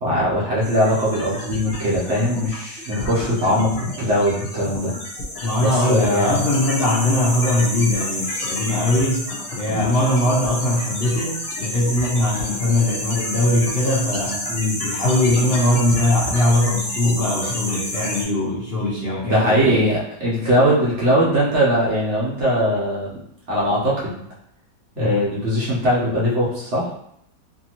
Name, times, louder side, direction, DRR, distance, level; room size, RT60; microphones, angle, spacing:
voice 1, 0.0-3.7 4.0-4.9 5.6-6.5 9.7-10.0 14.5-14.8 19.2-23.2 23.5-24.2 25.0-26.9, equal, 55° right, -6 dB, 0.9 m, -20 dB
sound 1, 0.6-18.2, left 1 dB, 65° left, 1.0 m, -29 dB
voice 2, 3.4-3.8 5.4-9.3 9.6-14.5 14.8-19.8 25.0-25.3, left 1 dB, 85° left, -8 dB, 0.5 m, -21 dB
2.8 x 2.7 x 2.8 m, 0.73 s
omnidirectional pair, 1.8 m